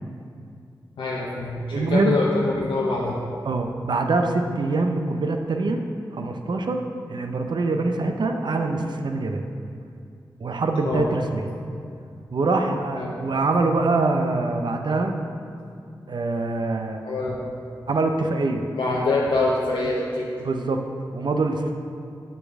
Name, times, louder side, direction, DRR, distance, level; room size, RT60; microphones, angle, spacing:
voice 1, 1.0-3.2 10.8-11.1 11.7-11.8 13.0-13.1 17.0-17.4 18.7-20.3, left 3 dB, 85° left, -4 dB, 0.7 m, -25 dB
voice 2, 1.7-2.2 3.4-5.8 6.1-6.8 7.1-9.4 10.4-11.4 12.3-15.1 16.1-17.0 17.9-18.6 19.8-19.9 20.4-20.8 21.1-21.7, right 3 dB, 65° right, 5 dB, 0.6 m, -24 dB
7.4 x 6.6 x 3.6 m, 2.4 s
cardioid pair, 45°, 8 cm